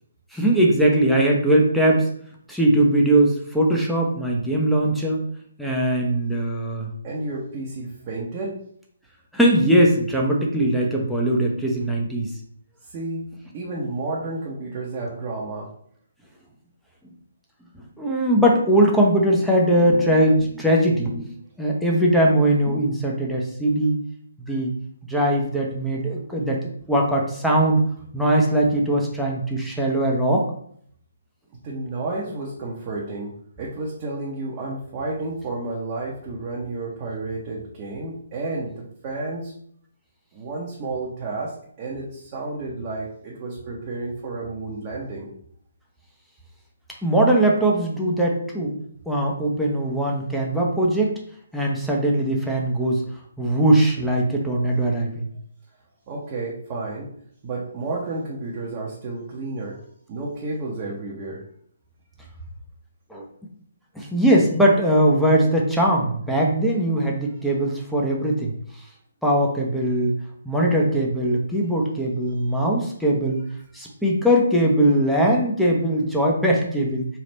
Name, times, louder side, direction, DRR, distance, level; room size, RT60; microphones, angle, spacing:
voice 1, 0.3-2.1 2.5-5.2 5.6-6.9 9.3-12.3 18.0-21.3 21.6-24.0 24.5-24.7 25.1-27.8 28.1-30.5 47.0-48.8 49.1-51.2 51.5-53.0 53.4-55.3 63.1-63.3 63.9-68.5 69.2-70.2 70.4-73.4 73.7-77.1, right 1 dB, ahead, -3 dB, 0.7 m, -20 dB
voice 2, 7.0-8.6 12.9-13.2 13.5-15.7 31.6-39.5 40.3-45.3 56.1-57.1 57.4-59.8 60.1-61.4, right 2 dB, 30° right, -4 dB, 0.8 m, -31 dB
3.4 x 2.4 x 4.1 m, 0.64 s
figure-of-eight pair, 145°, 0 cm